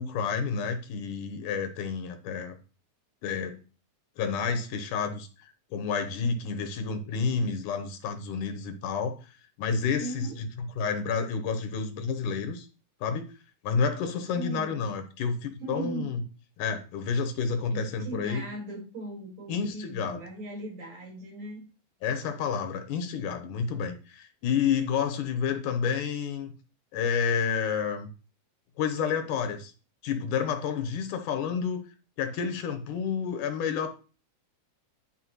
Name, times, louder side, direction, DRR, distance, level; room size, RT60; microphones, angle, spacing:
voice 1, 0.0-2.6 3.2-3.6 4.2-5.3 5.7-9.2 9.6-10.3 10.8-12.7 13.0-13.3 13.6-16.2 16.6-18.5 19.5-20.2 22.0-26.5 26.9-28.1 28.8-29.7 30.0-31.8 32.2-33.9, left 6 dB, 85° left, 7 dB, 2.7 m, -29 dB
voice 2, 10.0-10.4 14.3-14.9 15.6-16.2 17.7-21.7, right 2 dB, 60° right, -3 dB, 6.0 m, -38 dB
14.0 x 4.8 x 3.2 m, 0.34 s
omnidirectional pair, 3.6 m